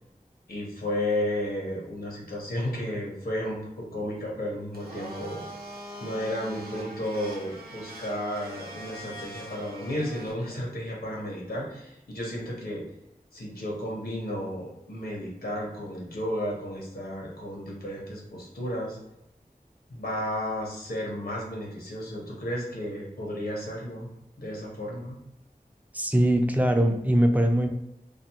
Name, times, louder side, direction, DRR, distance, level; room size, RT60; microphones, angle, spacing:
voice 1, 0.5-5.4 6.0-12.8 13.3-19.0 19.9-24.1 24.4-25.2, left 1 dB, 85° left, -3 dB, 0.8 m, -33 dB
Domestic sounds home sounds, 4.7-10.3, right 1 dB, 90° right, 0.7 m, -42 dB
voice 2, 25.9-27.7, right 1 dB, 10° right, 4 dB, 0.3 m, -22 dB
2.4 x 2.4 x 2.8 m, 0.86 s
wide cardioid pair, 50°, 15 cm